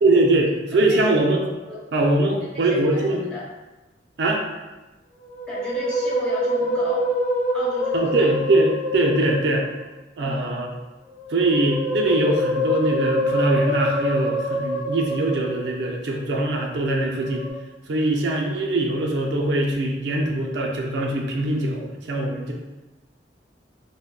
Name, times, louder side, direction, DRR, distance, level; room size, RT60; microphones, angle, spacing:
voice 1, 0.0-1.5 1.9-3.2 4.2-4.4 7.9-9.7 10.2-10.7 11.3-17.5 17.9-22.5, right 2 dB, 70° right, 0 dB, 0.4 m, -22 dB
voice 2, 0.7-1.0 1.7-1.8 2.7-3.4 5.5-7.1 7.5-8.3 10.2-10.6, left 1 dB, 5° left, -8 dB, 0.7 m, -35 dB
Musical instrument, 5.2-9.8 11.1-16.0 17.1-17.5, left 1 dB, 90° left, 0.9 m, -26 dB
3.6 x 2.1 x 2.2 m, 1.1 s
head